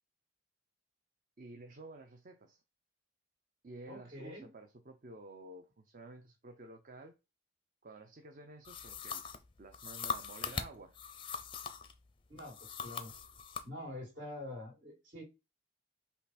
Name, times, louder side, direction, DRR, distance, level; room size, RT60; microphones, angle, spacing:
voice 1, 1.4-2.6 3.6-7.2 7.8-9.2 9.6-11.0, right 2 dB, 40° right, 0.5 m, -52 dB
voice 2, 3.9-4.5 12.3-13.1 13.6-15.2, left 1 dB, 60° right, 2.2 m, -46 dB
sound 1, 8.6-11.9 12.4-13.7, left 6 dB, 25° left, 0.5 m, -41 dB
5.5 x 2.3 x 4.1 m
head